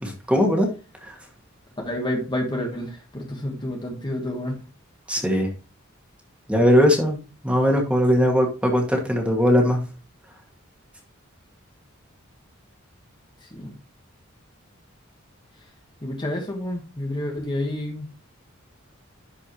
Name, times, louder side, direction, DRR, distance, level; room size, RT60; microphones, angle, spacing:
voice 1, 0.0-0.7 1.0-1.2 5.1-5.5 6.5-7.2 7.4-9.8, equal, 5° right, 1 dB, 2.1 m, -20 dB
voice 2, 1.8-4.6 13.4-13.7 16.0-18.1, left 1 dB, 20° left, 1 dB, 1.5 m, -29 dB
11.5 x 5.2 x 3.1 m, 0.33 s
head